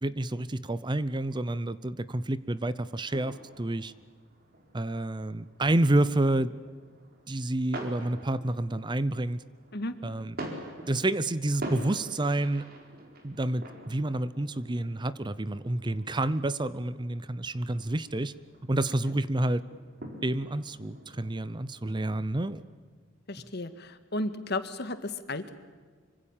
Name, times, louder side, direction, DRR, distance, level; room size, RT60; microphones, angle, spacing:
voice 1, 0.0-3.9 4.7-6.5 7.3-9.4 10.0-10.4 10.9-12.7 13.2-18.3 18.6-19.6 20.2-22.6, right 1 dB, 25° right, 16 dB, 0.7 m, -29 dB
sound 1, 2.9-22.8, right 1 dB, 50° right, 4.5 m, -46 dB
voice 2, 23.3-25.5, left 2 dB, 55° left, 10 dB, 1.8 m, -34 dB
25.5 x 25.0 x 7.3 m, 1.5 s
head